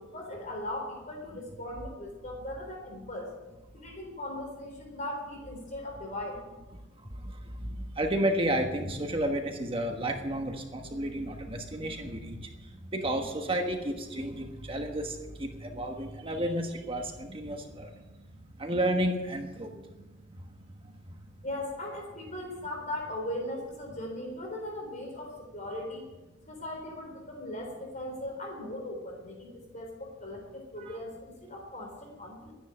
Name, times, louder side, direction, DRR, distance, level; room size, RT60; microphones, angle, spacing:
voice 1, 0.0-3.3 3.7-6.4 21.4-26.0 26.5-32.5, left 1 dB, 40° left, 1 dB, 3.7 m, -38 dB
voice 2, 7.6-17.9 18.6-19.7 30.8-31.0, right 1 dB, 30° right, 3 dB, 1.3 m, -32 dB
13.0 x 10.0 x 8.7 m, 1.1 s
head